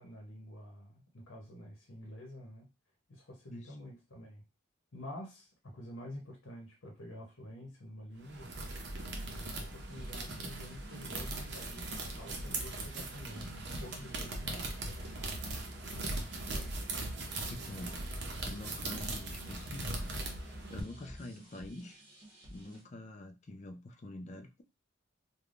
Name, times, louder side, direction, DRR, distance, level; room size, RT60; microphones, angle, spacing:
voice 1, 0.0-2.7 3.1-4.4 4.9-8.6 9.3-14.8, left 1 dB, 75° left, 0 dB, 0.9 m, -48 dB
Scratching Noise, 8.2-20.8, right 2 dB, 55° right, 0.6 m, -40 dB
sound 1, 8.9-22.8, right 1 dB, 25° right, 1.2 m, -54 dB
Musical instrument, 14.4-21.3, left 1 dB, 15° left, 0.8 m, -51 dB
voice 2, 17.5-18.0 18.4-22.0 22.5-24.6, left 2 dB, 35° left, 6 dB, 0.4 m, -47 dB
3.3 x 2.2 x 2.5 m, 0.26 s
head